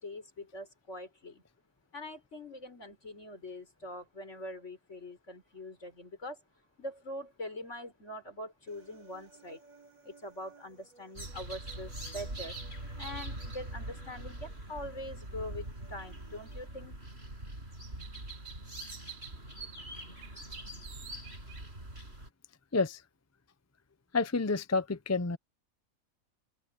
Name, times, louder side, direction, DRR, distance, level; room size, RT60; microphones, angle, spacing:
voice 1, 0.0-1.4 1.9-6.4 6.8-9.6 10.0-12.6 13.0-16.9, left 1 dB, 60° left, 5.2 m, -43 dB
Human voice, 8.7-16.7, right 4 dB, 75° right, 5.2 m, -60 dB
sound 1, 11.2-22.3, right 2 dB, 50° right, 6.8 m, -43 dB
voice 2, 24.1-25.4, left 3 dB, 20° left, 0.5 m, -29 dB
omnidirectional pair, 1.4 m